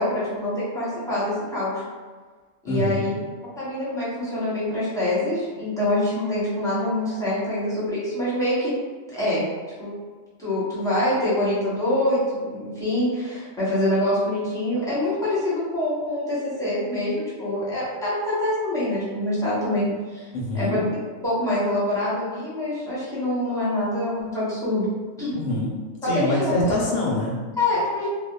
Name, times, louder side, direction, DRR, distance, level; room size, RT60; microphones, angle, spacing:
voice 1, 0.0-1.8 2.6-3.1 3.6-8.7 9.1-9.4 9.8-9.9 10.4-20.3 20.5-20.8 21.2-24.9 25.2-25.3 26.0-26.5 27.6-28.1, left 1 dB, 5° left, -10 dB, 0.7 m, -25 dB
voice 2, 2.7-3.1 20.3-20.8 25.3-25.7 26.0-27.4, left 1 dB, 45° left, -5 dB, 0.7 m, -25 dB
2.9 x 2.1 x 2.3 m, 1.5 s
omnidirectional pair, 1.3 m